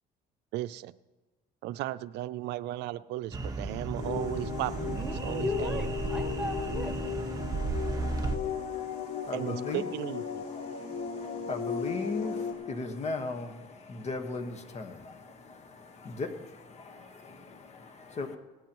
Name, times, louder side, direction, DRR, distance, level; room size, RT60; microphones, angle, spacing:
voice 1, 0.5-0.9 1.6-4.9 5.2-5.9 9.3-10.4, right 15 dB, 85° right, 15 dB, 0.4 m, -35 dB
sound 1, 3.3-8.4, right 3 dB, 20° right, 1.3 m, -34 dB
sound 2, 4.0-12.5, left 7 dB, 80° left, 2.6 m, -36 dB
voice 2, 4.7-7.5, equal, 5° right, 2 dB, 1.4 m, -39 dB
voice 3, 8.4-9.8 10.4-18.4, left 3 dB, 40° left, 6 dB, 1.4 m, -38 dB
19.0 x 14.5 x 3.1 m, 1.2 s
cardioid pair, 110°, 17 cm